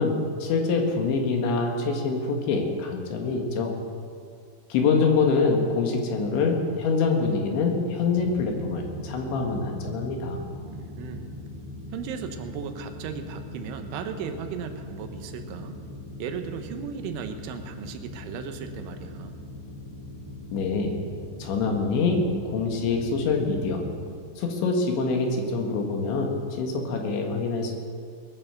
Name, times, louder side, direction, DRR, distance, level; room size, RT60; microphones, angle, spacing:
voice 1, 0.0-3.7 4.7-10.4 20.5-21.0 21.4-23.8 24.4-27.7, left 4 dB, 75° left, 2 dB, 3.9 m, -25 dB
sound 1, 8.1-24.1, left 2 dB, 60° right, 1.1 m, -41 dB
voice 2, 10.7-11.3 11.9-15.8 16.2-19.3, right 7 dB, 80° right, 7 dB, 3.4 m, -36 dB
21.0 x 9.4 x 6.9 m, 2.2 s
omnidirectional pair, 5.5 m